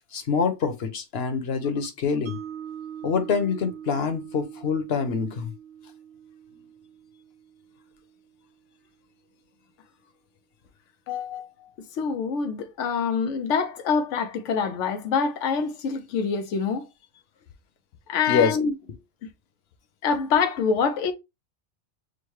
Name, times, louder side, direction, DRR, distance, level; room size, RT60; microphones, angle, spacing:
voice 1, 0.1-2.4 3.0-5.5 18.3-18.6, left 6 dB, 60° left, 1.1 m, -25 dB
Mallet percussion, 2.3-8.4, right 9 dB, 80° right, 1.8 m, -43 dB
voice 2, 11.1-16.9 18.1-18.7 20.0-21.1, left 6 dB, 90° left, 0.9 m, -26 dB
6.3 x 2.1 x 3.1 m
omnidirectional pair, 1.2 m